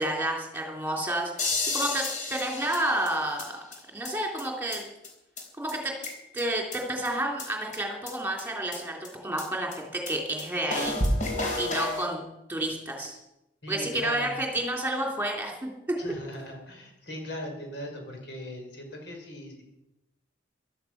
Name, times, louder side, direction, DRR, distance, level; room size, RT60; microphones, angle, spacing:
voice 1, 0.0-3.6 3.9-4.9 5.6-5.9 6.3-11.0 11.6-13.2 13.7-16.0, right 1 dB, 10° right, 1 dB, 3.3 m, -30 dB
sound 1, 1.4-3.4 3.7-3.8 4.0-4.1 4.4-4.5 4.7-4.8 5.0-5.1 5.4-5.5 5.7-6.4 6.7-6.8 7.1-7.2 7.4-7.5 7.7-7.8 8.1-8.2 8.4-8.5 8.7-8.8 9.0-9.1 9.4-9.5 9.7-9.8 10.1-10.2 10.4-10.5 10.7-12.0, left 2 dB, 40° left, 3.8 m, -30 dB
voice 2, 13.6-14.4 16.0-19.7, left 1 dB, 65° left, 2 dB, 4.9 m, -39 dB
15.5 x 12.5 x 6.0 m, 0.88 s
head